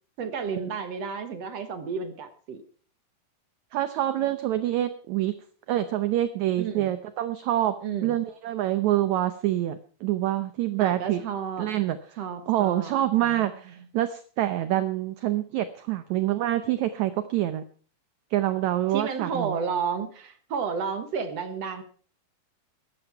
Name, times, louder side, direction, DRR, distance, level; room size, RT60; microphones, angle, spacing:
voice 1, 0.2-2.6 6.6-6.9 7.8-8.2 10.8-11.7 12.2-12.9 13.2-13.5 18.9-21.8, right 6 dB, 60° right, 9 dB, 1.9 m, -32 dB
voice 2, 3.7-5.4 5.7-7.7 8.0-11.2 11.6-12.0 12.5-17.6 18.3-19.6, right 13 dB, 75° right, 12 dB, 1.7 m, -26 dB
14.5 x 11.0 x 5.8 m, 0.42 s
omnidirectional pair, 4.2 m